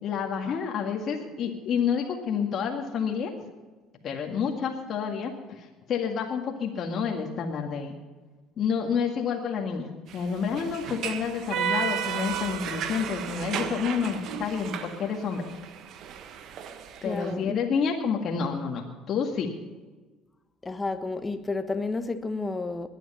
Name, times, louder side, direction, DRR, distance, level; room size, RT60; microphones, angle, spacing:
voice 1, 0.0-3.3 4.0-7.9 8.6-9.9 10.1-15.4 17.0-19.5, left 6 dB, 50° left, 1.9 m, -29 dB
sound 1, 10.1-17.3, right 8 dB, 55° right, 1.4 m, -33 dB
voice 2, 17.0-17.6 20.6-22.9, left 3 dB, 20° left, 1.3 m, -31 dB
21.0 x 9.4 x 5.6 m
hypercardioid pair, 65°, 0 cm